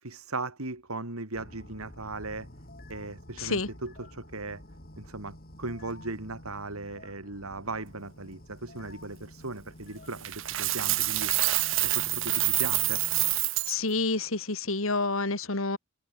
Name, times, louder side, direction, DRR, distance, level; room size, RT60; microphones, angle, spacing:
voice 1, 0.0-2.5 2.9-4.6 5.0-11.3 11.8-13.0, right 3 dB, 85° right, 3.1 m, -38 dB
sound 1, 1.3-13.4, left 1 dB, 45° left, 7.6 m, -49 dB
voice 2, 3.4-3.7 13.7-15.8, left 3 dB, 70° left, 2.8 m, -28 dB
Coin (dropping), 10.2-13.7, right 18 dB, 60° right, 0.8 m, -27 dB
head